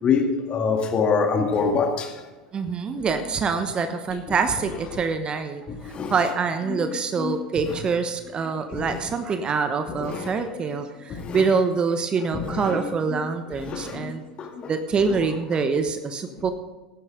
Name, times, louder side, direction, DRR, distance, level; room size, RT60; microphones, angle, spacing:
voice 1, 0.0-2.1 5.7-6.1 6.7-6.8 7.2-7.3 8.7-8.9 9.9-10.6 11.1-11.4 12.3-13.2 13.6-14.7, left 5 dB, 30° left, 2.1 m, -26 dB
voice 2, 2.5-14.2 14.7-16.5, right 5 dB, 25° right, 1.0 m, -25 dB
15.0 x 11.0 x 3.8 m
figure-of-eight pair, 85°, 4 cm